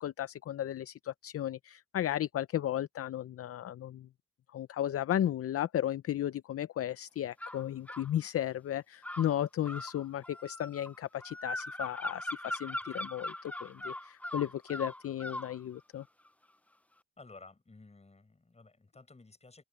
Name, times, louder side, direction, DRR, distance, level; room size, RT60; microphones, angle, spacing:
voice 1, 0.0-4.1 4.5-16.0, left 11 dB, 50° left, 0.6 m, -34 dB
sound 1, 7.4-8.1 9.0-15.5, left 1 dB, 5° left, 0.6 m, -40 dB
voice 2, 17.2-19.6, left 3 dB, 20° left, 7.4 m, -55 dB
open air
cardioid pair, 90°, 30 cm